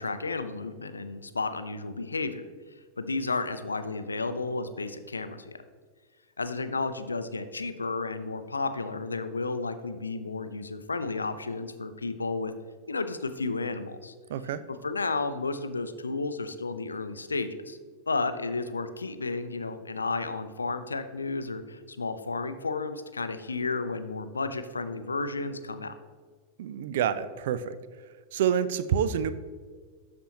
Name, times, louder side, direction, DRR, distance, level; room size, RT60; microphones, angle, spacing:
voice 1, 0.0-2.4 3.0-5.6 6.4-12.5 12.9-14.1 14.7-17.8 18.1-25.9, left 3 dB, 75° left, 11 dB, 0.4 m, -32 dB
voice 2, 14.3-14.6 26.6-27.7 28.3-29.3, right 9 dB, 55° right, 14 dB, 0.4 m, -27 dB
12.0 x 4.3 x 2.9 m, 1.5 s
figure-of-eight pair, 90°, 0 cm